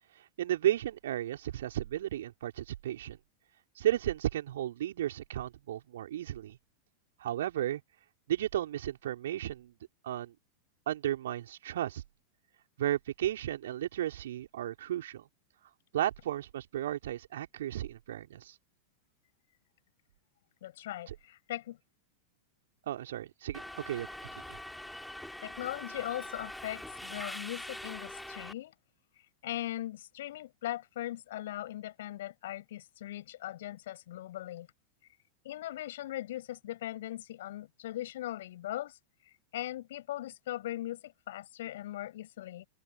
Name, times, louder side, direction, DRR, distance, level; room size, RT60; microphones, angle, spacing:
voice 1, 0.2-3.2 3.8-6.6 7.2-7.8 8.3-9.7 10.0-10.3 10.9-12.0 12.8-15.3 15.9-18.5 21.1-21.2 22.9-24.1 24.4-24.6, right 12 dB, 60° right, 4.6 m, -34 dB
voice 2, 20.6-21.8 25.4-28.7 29.4-34.7 35.4-39.0 39.5-42.7, left 14 dB, 55° left, 6.2 m, -39 dB
Subway metro underground, 23.5-28.5, left 1 dB, 5° left, 3.6 m, -43 dB
open air
figure-of-eight pair, 90°, 0 cm